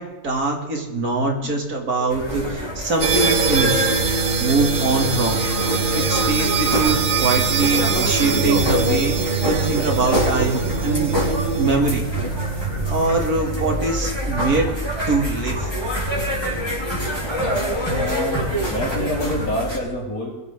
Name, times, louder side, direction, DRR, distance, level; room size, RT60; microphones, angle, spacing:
voice 1, 0.0-3.9 4.4-5.4 5.7-11.1 11.6-12.0 12.5-14.7 15.1-15.7, right 3 dB, 90° right, 1 dB, 3.0 m, -23 dB
sound 1, 2.1-19.8, equal, 15° left, 3.8 m, -25 dB
sound 2, 3.0-11.8, right 5 dB, 45° right, 0.8 m, -24 dB
sound 3, 3.1-13.2, right 2 dB, 90° left, 4.2 m, -28 dB
voice 2, 18.0-20.4, equal, 70° left, -3 dB, 4.5 m, -27 dB
22.0 x 12.5 x 3.7 m, 1.1 s
omnidirectional pair, 1.6 m